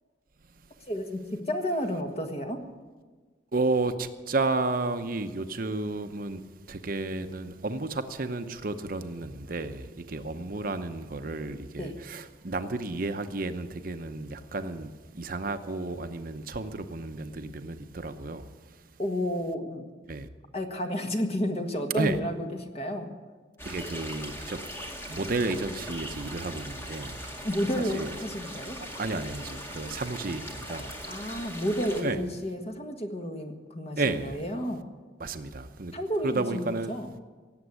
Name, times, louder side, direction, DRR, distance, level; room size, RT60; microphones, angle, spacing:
voice 1, 0.9-2.6 11.8-12.0 19.0-19.9 20.5-23.1 27.4-28.8 31.1-34.8 35.9-37.1, equal, 35° left, 1.6 m, -31 dB
voice 2, 3.5-6.4 6.7-18.5 20.1-20.3 22.0-22.2 23.6-24.6 25.1-27.3 27.9-28.1 29.0-31.3 32.0-32.2 34.0-34.4 35.2-36.0 36.2-36.9, right 3 dB, 50° right, 0.8 m, -32 dB
sound 1, 23.6-32.0, equal, 15° left, 1.9 m, -40 dB
17.5 x 8.0 x 9.7 m
head